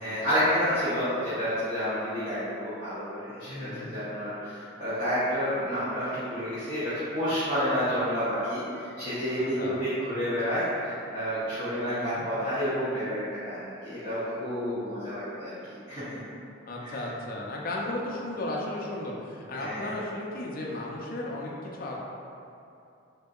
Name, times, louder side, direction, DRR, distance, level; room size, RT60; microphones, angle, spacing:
voice 1, 0.0-15.5 15.9-16.3 16.8-17.0 19.5-20.0, equal, 25° right, -14 dB, 0.7 m, -30 dB
voice 2, 3.4-3.9 9.4-9.8 11.9-12.3 16.7-22.0, left 1 dB, 45° left, -3 dB, 0.4 m, -35 dB
3.5 x 2.7 x 2.3 m, 2.7 s
head